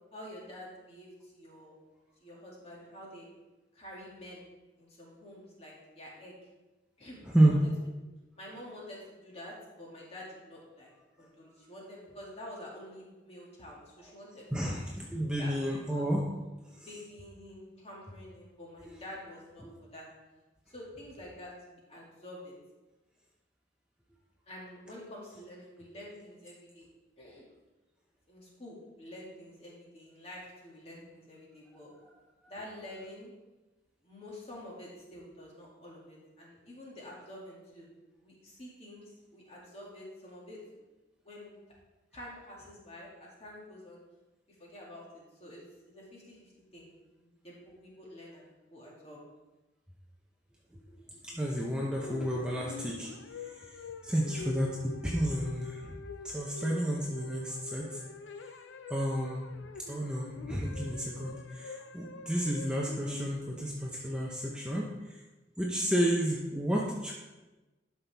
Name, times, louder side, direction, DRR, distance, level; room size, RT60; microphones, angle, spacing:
voice 1, 0.1-1.8 2.2-3.3 3.7-4.4 4.8-6.4 7.0-7.7 8.3-10.9 11.2-14.7 15.4-16.0 16.9-19.7 19.9-20.0 20.7-22.5 24.5-26.9 27.2-27.5 28.3-31.9 32.5-33.3 34.0-37.9 38.2-40.6 41.2-41.6 42.1-44.0 44.6-46.9 47.2-49.2, left 1 dB, 30° left, -4 dB, 2.3 m, -48 dB
voice 2, 7.2-7.6 11.2-11.3 14.5-16.2 16.7-16.9 18.9-19.0 19.6-19.7 51.2-56.0 56.2-58.1 58.9-59.5 59.9-65.2 65.6-67.1, right 1 dB, 5° right, -3 dB, 0.8 m, -31 dB
sound 1, 51.9-63.3, left 4 dB, 90° left, 0.5 m, -46 dB
12.0 x 5.9 x 3.5 m, 1.1 s
head